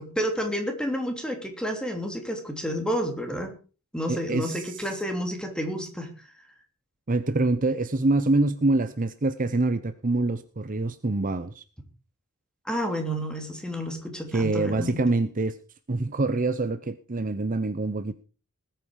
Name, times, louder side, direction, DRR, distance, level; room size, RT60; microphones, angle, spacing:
voice 1, 0.0-3.5 3.9-6.1 12.6-15.0, equal, 5° left, 4 dB, 3.0 m, -30 dB
voice 2, 4.1-4.8 7.1-11.6 14.3-15.6 15.9-18.1, right 2 dB, 40° right, 12 dB, 0.8 m, -25 dB
20.0 x 9.1 x 4.8 m, 0.36 s
head